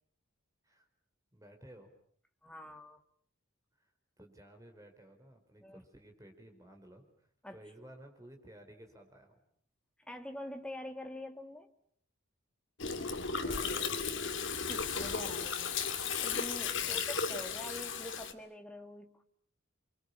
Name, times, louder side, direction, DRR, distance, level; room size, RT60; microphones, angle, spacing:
voice 1, 1.3-1.9 3.8-3.9 4.2-9.4 13.3-14.1 16.8-17.2, right 1 dB, 15° right, 4 dB, 5.1 m, -55 dB
voice 2, 2.4-3.0 5.6-5.8 7.4-7.6 10.1-11.7 14.7-15.7 16.2-19.2, left 1 dB, 5° left, 5 dB, 2.1 m, -45 dB
Gurgling, 12.8-18.3, left 5 dB, 60° left, 2.3 m, -35 dB
29.5 x 24.5 x 7.2 m, 0.63 s
head